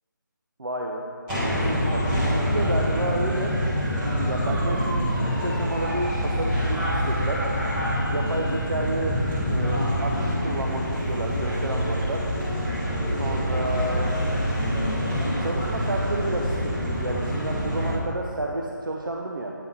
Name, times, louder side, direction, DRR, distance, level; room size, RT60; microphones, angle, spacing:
voice 1, 0.6-1.0 1.9-3.6 4.3-7.4 8.1-12.2 13.2-14.2 15.4-19.5, right 2 dB, 80° right, 0 dB, 0.7 m, -31 dB
sound 1, 1.3-17.9, equal, 10° right, 1.0 m, -26 dB
8.9 x 3.8 x 5.6 m, 2.4 s
figure-of-eight pair, 160°, 11 cm